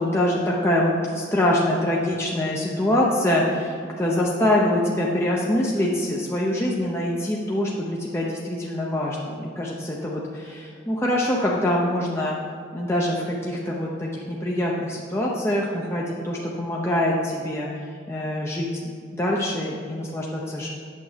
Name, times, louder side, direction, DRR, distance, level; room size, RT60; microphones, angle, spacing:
voice 1, 0.0-12.4 12.7-17.7 18.1-20.7, left 1 dB, 15° left, -4 dB, 0.7 m, -24 dB
8.6 x 6.8 x 5.0 m, 2.2 s
head